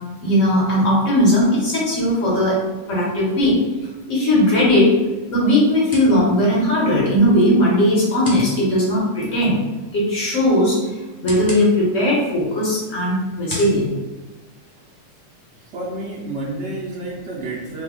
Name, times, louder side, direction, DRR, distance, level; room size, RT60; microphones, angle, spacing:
voice 1, 0.2-2.6 2.9-3.5 4.1-4.9 5.3-9.6 9.9-13.9, left 1 dB, 65° left, -6 dB, 1.5 m, -18 dB
sound 1, 4.1-15.1, left 1 dB, 20° left, 0.8 m, -40 dB
voice 2, 15.6-17.8, right 2 dB, 65° right, -4 dB, 0.8 m, -30 dB
3.1 x 2.2 x 3.6 m, 1.2 s
omnidirectional pair, 1.4 m